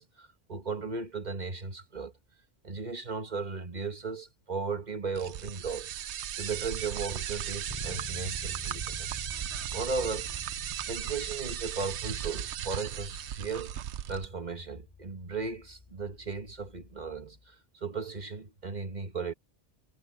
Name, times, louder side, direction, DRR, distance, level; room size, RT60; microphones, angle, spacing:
voice 1, 0.0-2.1 2.6-5.9 6.4-9.2 9.7-10.3 10.9-13.8 14.1-19.3, right 4 dB, 40° right, 1.6 m, -36 dB
sound 1, 5.1-14.3, right 10 dB, 85° right, 1.0 m, -36 dB
Bass guitar, 7.7-17.5, left 5 dB, 30° left, 0.4 m, -49 dB
omnidirectional pair, 1.1 m